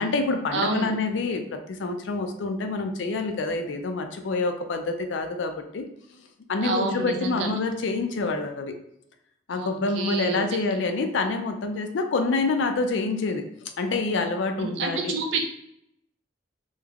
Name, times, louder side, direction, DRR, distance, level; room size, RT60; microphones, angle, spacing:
voice 1, 0.0-5.8 6.5-8.7 9.5-13.4 13.8-15.2, left 3 dB, 80° left, 6 dB, 0.4 m, -27 dB
voice 2, 0.5-0.9 6.6-7.5 9.5-10.4 14.6-15.4, right 3 dB, 75° right, 3 dB, 0.5 m, -28 dB
3.1 x 2.1 x 2.3 m, 0.76 s
head